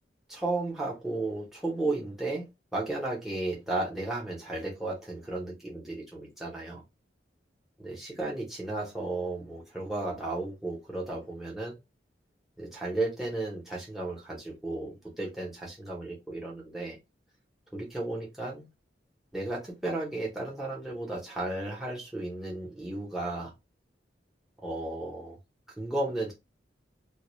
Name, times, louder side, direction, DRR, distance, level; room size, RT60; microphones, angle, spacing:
voice 1, 0.3-6.8 7.8-11.7 12.6-17.0 17.7-18.7 19.3-23.5 24.6-25.4 25.8-26.3, right 2 dB, ahead, 0.7 m, -34 dB
2.2 x 2.1 x 3.0 m
head